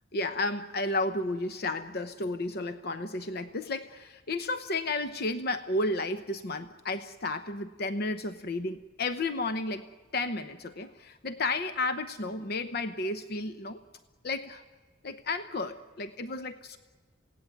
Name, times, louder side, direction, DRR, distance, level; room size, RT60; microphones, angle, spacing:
voice 1, 0.1-9.9 10.1-13.8 14.2-14.6 15.0-16.8, left 2 dB, 55° left, 10 dB, 0.8 m, -32 dB
28.0 x 17.5 x 9.2 m, 1.4 s
head